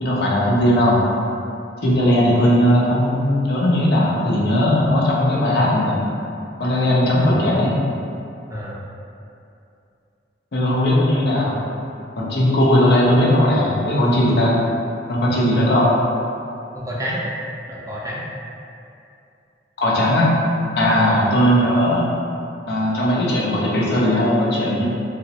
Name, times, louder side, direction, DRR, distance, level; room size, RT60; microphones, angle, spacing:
voice 1, 0.0-1.0 1.8-6.0 6.6-7.7 10.5-11.6 12.2-14.6 15.1-15.9 19.8-20.3 20.8-22.1 22.7-24.8, left 1 dB, 60° left, -5 dB, 0.6 m, -18 dB
voice 2, 8.5-8.8 15.3-15.7 16.7-17.2 17.7-18.3 20.8-21.2, equal, 20° right, -5 dB, 0.4 m, -30 dB
3.4 x 2.0 x 2.8 m, 2.6 s
head